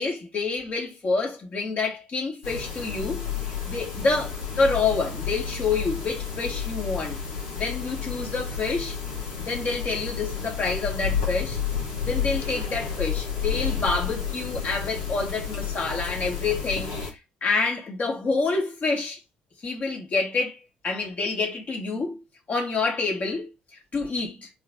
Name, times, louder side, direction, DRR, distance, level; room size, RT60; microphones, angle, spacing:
voice 1, 0.0-3.3 3.6-7.2 7.6-9.0 9.4-11.6 12.0-16.9 17.4-19.2 19.6-20.6 20.8-22.2 22.5-24.5, left 3 dB, 40° left, 2.0 m, -27 dB
sound 1, 2.4-17.1, left 7 dB, 75° left, 1.6 m, -31 dB
3.9 x 3.4 x 3.8 m
figure-of-eight pair, 45°, 4 cm